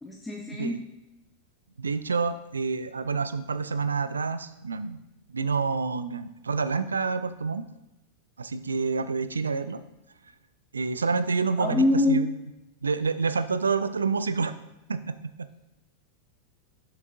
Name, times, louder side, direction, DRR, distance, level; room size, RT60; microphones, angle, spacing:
voice 1, 0.0-0.8 11.6-12.2, left 2 dB, 10° left, 0 dB, 0.7 m, -24 dB
voice 2, 0.5-0.8 1.8-5.0 5.3-7.6 8.4-9.8 10.7-12.3 12.8-14.5 14.9-15.5, right 4 dB, 75° right, 13 dB, 0.4 m, -28 dB
7.0 x 6.0 x 2.6 m, 0.94 s
figure-of-eight pair, 90°, 0 cm